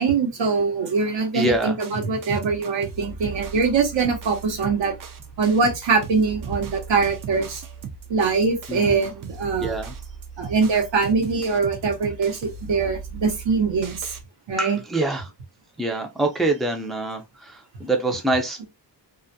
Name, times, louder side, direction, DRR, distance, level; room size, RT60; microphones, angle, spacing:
voice 1, 0.0-5.0 5.4-7.6 8.1-9.7 10.4-14.1 14.5-14.8, right 4 dB, 75° right, 0.9 m, -23 dB
voice 2, 1.3-1.7 8.7-9.1 9.6-9.9 14.6-15.3 15.8-18.7, right 2 dB, ahead, 0.4 m, -25 dB
sound 1, 1.4-14.2, right 5 dB, 50° right, 0.5 m, -38 dB
2.3 x 2.1 x 2.6 m
cardioid pair, 75°, 44 cm